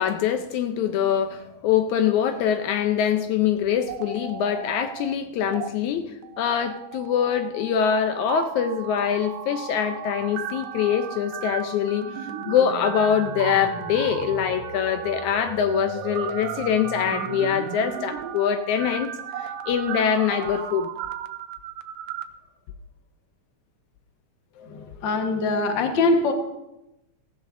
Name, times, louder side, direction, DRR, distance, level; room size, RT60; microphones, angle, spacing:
voice 1, 0.0-12.1 12.5-19.1 19.4-20.9 24.6-24.7, left 8 dB, 75° left, 7 dB, 2.1 m, -24 dB
sound 1, 3.7-5.1 5.4-5.7 6.2-22.2, right 9 dB, 85° right, 1.4 m, -35 dB
voice 2, 24.6-26.3, left 3 dB, 45° left, 4 dB, 1.7 m, -23 dB
16.5 x 15.5 x 2.6 m, 0.90 s
omnidirectional pair, 3.5 m